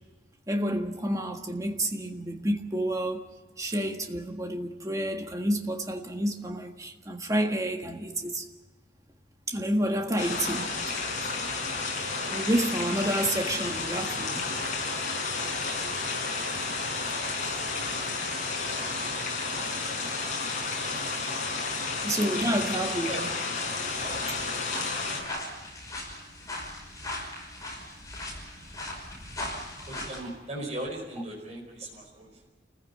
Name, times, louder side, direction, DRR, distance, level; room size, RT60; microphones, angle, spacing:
voice 1, 0.5-3.3 3.6-8.4 9.5-10.7 11.4-11.5 12.3-14.4 22.0-23.3 24.0-24.4 29.8-29.9, right 1 dB, 20° right, 1.6 m, -29 dB
sound 1, 10.2-25.2, left 3 dB, 40° left, 6.2 m, -31 dB
sound 2, 24.0-30.2, left 1 dB, 20° left, 5.7 m, -39 dB
voice 2, 29.8-32.5, right 1 dB, 35° right, 5.0 m, -38 dB
29.5 x 15.0 x 8.5 m
head